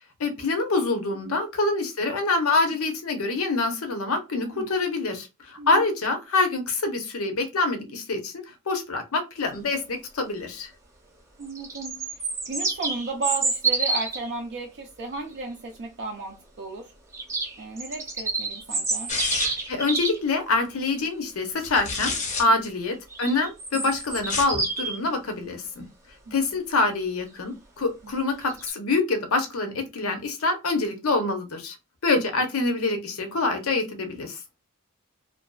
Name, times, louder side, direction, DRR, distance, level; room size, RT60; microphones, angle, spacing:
voice 1, 0.2-8.3 8.7-10.7 19.7-22.1 22.4-25.8 26.3-31.7 32.0-34.4, left 3 dB, 70° left, 0.7 m, -25 dB
voice 2, 4.4-4.7 5.6-5.9 11.4-16.9 17.6-19.1 22.5-22.6 23.7-23.8 26.3-26.6 28.0-28.1 32.1-32.2, right 3 dB, 50° right, 0.4 m, -35 dB
sound 1, 11.4-14.3 17.1-20.2 23.1-25.0 28.5-28.7, right 3 dB, 15° right, 0.7 m, -28 dB
sound 2, 19.1-19.7 21.6-22.4 24.2-24.6, left 4 dB, 35° left, 0.5 m, -29 dB
2.6 x 2.3 x 2.2 m
head